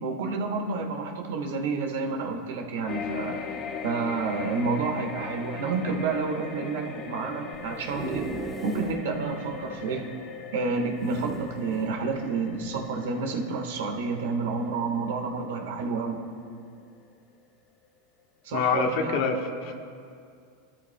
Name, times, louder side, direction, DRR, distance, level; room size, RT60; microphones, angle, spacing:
voice 1, 0.0-3.4 3.8-8.3 8.6-10.0 10.5-16.2 18.4-19.2, right 4 dB, 80° right, 3 dB, 1.5 m, -29 dB
sound 1, 2.9-17.5 17.8-18.0, left 6 dB, 40° left, 0.9 m, -40 dB
sound 2, 7.5-9.1 9.5-9.6 9.8-9.9 11.0-12.0 12.6-12.8, right 3 dB, 20° right, 1.1 m, -38 dB
voice 2, 18.5-19.7, left 5 dB, 60° left, 4 dB, 1.2 m, -26 dB
20.5 x 13.5 x 2.3 m, 2.3 s
supercardioid pair, 130°, 0 cm